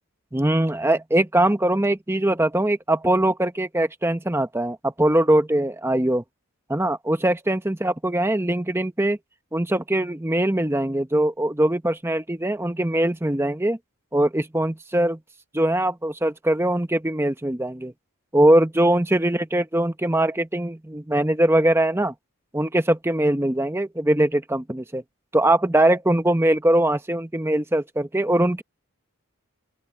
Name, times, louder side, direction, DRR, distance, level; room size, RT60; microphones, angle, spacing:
voice 1, 0.3-6.2 6.7-9.2 9.5-13.8 14.1-15.2 15.5-17.9 18.3-22.1 22.5-25.0 25.3-28.6, right 1 dB, 10° right, 0.7 m, -21 dB
open air
head